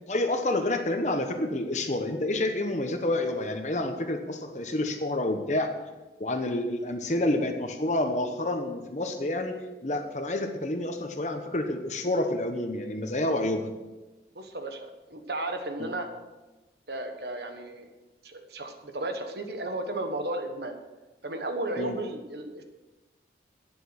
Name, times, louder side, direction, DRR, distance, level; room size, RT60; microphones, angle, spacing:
voice 1, 0.1-5.7 6.2-13.7 15.8-15.9 21.8-22.0, left 1 dB, 40° left, 5 dB, 1.0 m, -29 dB
voice 2, 14.3-16.1 16.9-17.9 18.2-20.8 21.2-22.6, right 2 dB, 70° right, 6 dB, 1.4 m, -34 dB
11.5 x 9.1 x 6.4 m, 1.1 s
head